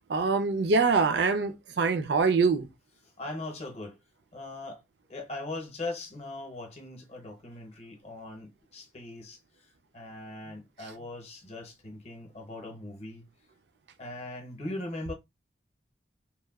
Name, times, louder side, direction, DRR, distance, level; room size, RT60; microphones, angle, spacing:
voice 1, 0.1-2.7, right 4 dB, 75° right, 0.4 m, -24 dB
voice 2, 3.2-4.0 4.3-4.8 5.1-9.4 9.9-13.3 14.0-15.1, left 2 dB, 35° left, 0.7 m, -40 dB
2.9 x 2.2 x 2.3 m
head